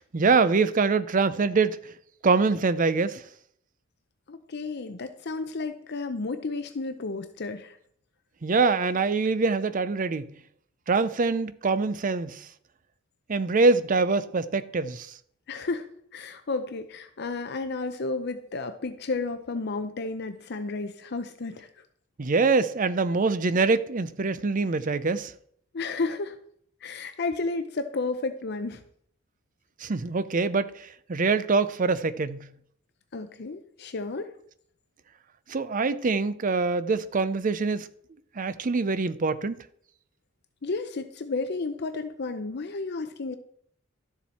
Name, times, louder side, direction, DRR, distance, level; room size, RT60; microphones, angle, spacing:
voice 1, 0.0-1.8 2.2-3.2 8.4-10.3 10.9-12.5 13.3-15.1 22.2-25.3 29.8-32.5 35.5-37.9 38.4-39.6, right 4 dB, 40° right, 0.5 m, -24 dB
voice 2, 4.3-7.8 15.5-21.7 25.7-26.4 26.8-28.8 33.1-34.3 40.6-43.4, left 3 dB, 55° left, 0.6 m, -32 dB
12.0 x 7.2 x 4.3 m
head